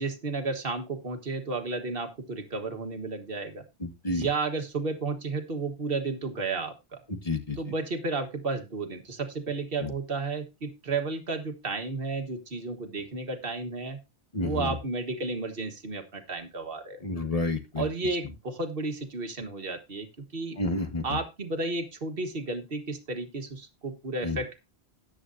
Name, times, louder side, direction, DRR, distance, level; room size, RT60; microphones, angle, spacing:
voice 1, 0.0-3.6 4.1-7.0 7.6-14.0 14.4-17.0 17.8-20.6 21.0-24.6, right 3 dB, 60° right, 5 dB, 1.8 m, -32 dB
voice 2, 3.8-4.3 7.1-7.6 9.8-9.9 14.3-14.8 17.0-17.9 20.6-21.2 24.2-24.4, left 3 dB, 35° left, 6 dB, 1.7 m, -30 dB
14.0 x 9.8 x 2.7 m, 0.24 s
omnidirectional pair, 1.1 m